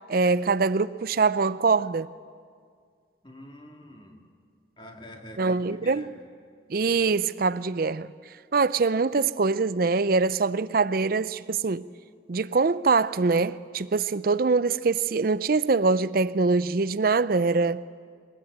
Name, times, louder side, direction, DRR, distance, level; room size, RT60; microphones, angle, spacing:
voice 1, 0.1-2.1 5.4-6.1 6.7-8.1 8.5-11.9 12.3-17.8, right 4 dB, 50° right, 0.5 m, -23 dB
voice 2, 3.2-4.2 4.8-6.1, left 1 dB, 25° left, 2.3 m, -45 dB
23.0 x 19.5 x 8.9 m
head